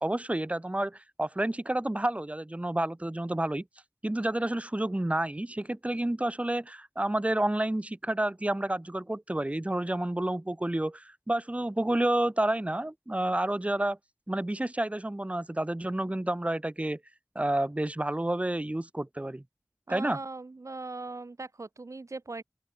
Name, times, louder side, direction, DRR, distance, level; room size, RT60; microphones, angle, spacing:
voice 1, 0.0-3.6 4.0-14.0 14.3-17.0 17.4-19.4 19.9-20.2, right 1 dB, 20° right, 0.7 m, -30 dB
voice 2, 19.9-22.4, right 3 dB, 60° right, 0.5 m, -39 dB
open air
wide cardioid pair, 40°, 6 cm